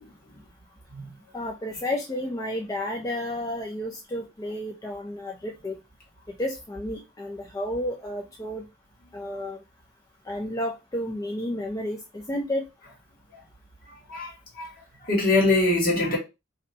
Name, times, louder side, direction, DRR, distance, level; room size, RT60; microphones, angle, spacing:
voice 1, 1.3-5.8 6.3-8.6 9.1-9.6 10.3-12.7, left 1 dB, 20° left, 0.3 m, -31 dB
voice 2, 14.1-14.7 15.0-16.2, left 2 dB, 50° left, 1.5 m, -23 dB
2.6 x 2.1 x 3.9 m
head